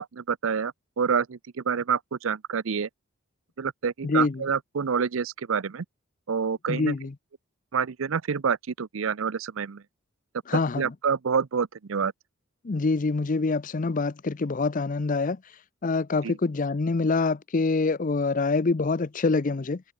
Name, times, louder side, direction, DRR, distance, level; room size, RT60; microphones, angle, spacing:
voice 1, 0.0-2.9 3.6-5.8 6.3-7.0 7.7-9.8 10.8-12.1 16.2-16.4, right 6 dB, 70° right, 0.6 m, -27 dB
voice 2, 4.0-4.4 6.7-7.1 10.5-10.8 12.6-15.4 15.8-19.8, left 3 dB, 40° left, 0.5 m, -25 dB
head